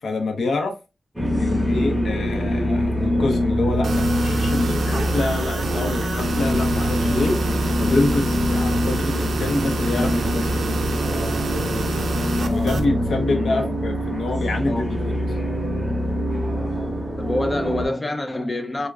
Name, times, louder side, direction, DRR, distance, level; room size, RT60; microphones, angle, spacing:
voice 1, 0.0-0.8 1.3-10.5 12.4-15.1, left 2 dB, 70° left, 0.6 m, -26 dB
sound 1, 1.2-17.9, equal, 10° right, 0.8 m, -24 dB
sound 2, 3.8-12.9, right 4 dB, 80° right, 0.4 m, -29 dB
voice 2, 13.2-13.7 14.7-15.0 17.2-18.9, left 1 dB, 20° left, 0.4 m, -26 dB
4.5 x 2.1 x 2.3 m
wide cardioid pair, 160°, 0 cm